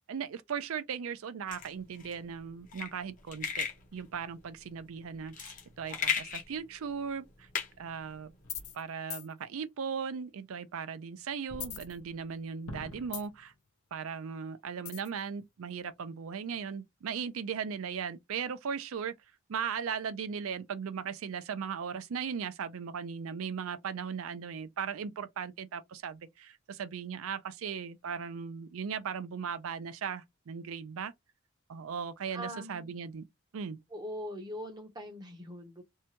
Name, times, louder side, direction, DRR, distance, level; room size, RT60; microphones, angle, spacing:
voice 1, 0.1-7.5 7.8-8.3 8.7-13.5 13.9-19.2 19.5-31.1 31.7-33.3 33.5-33.8, right 6 dB, 75° right, 0.4 m, -38 dB
sound 1, 1.5-8.7, left 7 dB, 35° left, 0.6 m, -37 dB
sound 2, 8.4-8.8 9.1-9.3 11.5-12.4 12.7-13.5 14.9-15.2, left 7 dB, 90° left, 0.7 m, -41 dB
voice 2, 32.3-32.9 33.9-35.8, equal, 20° right, 0.6 m, -41 dB
2.7 x 2.2 x 2.8 m
head